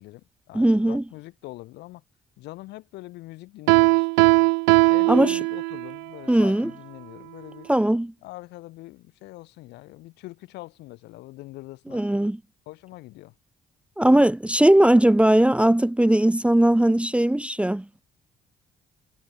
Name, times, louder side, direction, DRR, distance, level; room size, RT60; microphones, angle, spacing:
voice 1, 0.0-2.0 2.4-4.3 4.9-7.7 8.2-12.3 12.7-13.3, left 19 dB, 85° left, 5.5 m, -43 dB
voice 2, 0.5-1.0 5.1-5.4 6.3-6.7 7.7-8.1 11.9-12.4 14.0-18.0, right 1 dB, 5° right, 0.8 m, -19 dB
Piano, 3.7-6.0, right 33 dB, 90° right, 0.5 m, -19 dB
supercardioid pair, 60°, 17 cm